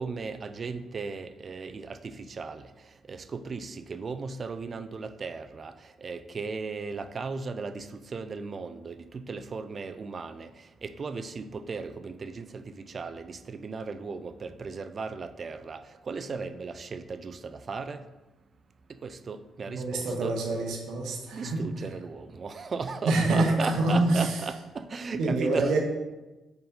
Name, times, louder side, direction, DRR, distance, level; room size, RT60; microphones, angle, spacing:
voice 1, 0.0-18.0 18.9-20.4 21.3-25.7, right 4 dB, 40° right, 11 dB, 0.4 m, -36 dB
voice 2, 19.7-21.6 23.0-24.3 25.2-25.8, right 2 dB, 80° right, 1 dB, 0.9 m, -26 dB
4.6 x 3.9 x 5.3 m, 1.1 s
cardioid pair, 90°, 0 cm